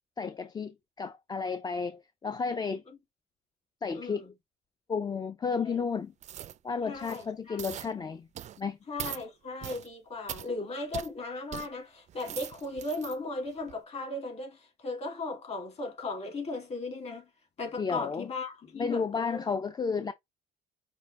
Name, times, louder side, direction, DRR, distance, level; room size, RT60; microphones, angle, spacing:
voice 1, 0.2-2.8 3.8-4.2 4.9-6.1 6.6-8.3 8.6-8.8 17.8-18.3 18.8-20.1, left 5 dB, 25° left, 0.4 m, -32 dB
voice 2, 3.9-4.3 5.6-5.7 6.8-7.6 8.9-17.3 17.6-19.5, left 2 dB, 40° left, 2.4 m, -37 dB
sound 1, 6.2-6.6 6.9-7.3 7.6-7.9 8.4-8.6 9.0-9.2 9.6-9.9 10.3-10.5 10.9-11.1 11.5-11.7 12.1-13.2 13.6-13.7, right 11 dB, 45° right, 0.4 m, -40 dB
5.4 x 2.5 x 3.2 m
cardioid pair, 110°, 17 cm